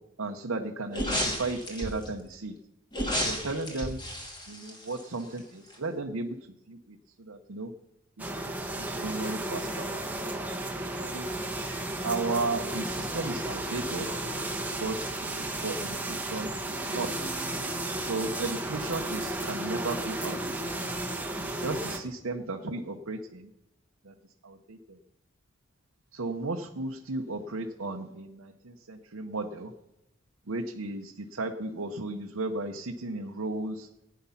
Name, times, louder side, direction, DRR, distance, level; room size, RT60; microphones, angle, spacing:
voice 1, 0.2-2.6 3.2-4.0 4.5-6.4 6.7-7.7 8.2-8.3 8.8-9.9 11.0-11.3 12.0-14.1 14.8-17.1 18.1-20.7 21.4-23.5 24.0-24.1 24.4-25.0 26.1-29.7 30.5-33.9, right 3 dB, 70° right, 2 dB, 0.9 m, -35 dB
sound 1, 0.9-2.1 2.9-5.4 5.7-5.8, equal, 20° left, 2.4 m, -32 dB
sound 2, 8.2-22.0, right 1 dB, 5° right, 1.2 m, -33 dB
16.5 x 9.5 x 5.7 m, 0.92 s
head